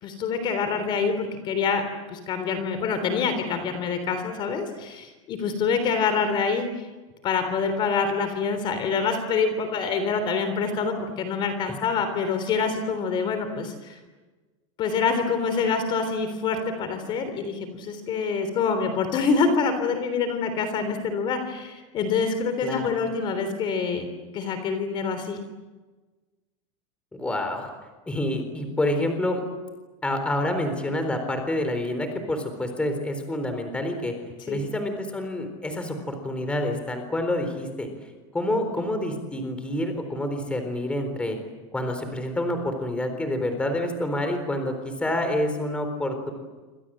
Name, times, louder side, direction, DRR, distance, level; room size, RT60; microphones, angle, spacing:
voice 1, 0.0-1.8 2.1-6.7 7.2-14.0 14.8-25.4 34.5-34.7, left 5 dB, 30° left, 8 dB, 3.5 m, -26 dB
voice 2, 27.1-27.7 28.1-29.4 30.0-34.1 34.5-37.9 38.3-41.4 41.7-46.3, left 1 dB, 5° left, 6 dB, 4.0 m, -28 dB
28.0 x 26.0 x 7.7 m, 1.3 s
supercardioid pair, 170°, 16 cm